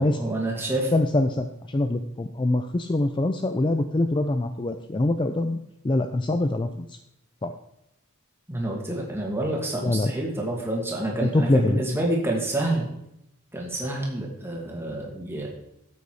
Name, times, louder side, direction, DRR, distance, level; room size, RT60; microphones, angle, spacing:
voice 1, 0.0-0.9 8.5-12.9 13.5-15.5, right 1 dB, 10° right, -2 dB, 2.4 m, -28 dB
voice 2, 0.9-7.0 7.4-7.5 9.8-10.1 11.2-11.8, left 2 dB, 20° left, 8 dB, 0.4 m, -24 dB
12.5 x 8.3 x 4.8 m, 0.83 s
head